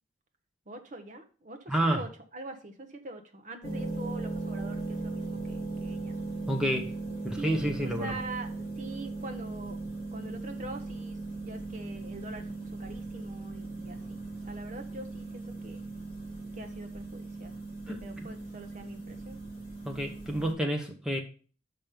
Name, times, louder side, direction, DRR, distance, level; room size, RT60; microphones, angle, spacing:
voice 1, 0.7-6.2 7.1-8.5 8.8-9.8 10.1-15.8 16.5-17.6 18.0-19.4, right 2 dB, 40° right, 5 dB, 0.9 m, -44 dB
voice 2, 1.7-2.0 6.5-6.9 7.2-8.1 17.9-18.3 19.8-21.2, right 1 dB, 5° right, 2 dB, 1.0 m, -29 dB
sound 1, 3.6-20.5, right 2 dB, 35° left, 3.3 m, -38 dB
5.9 x 5.3 x 5.2 m, 0.38 s
head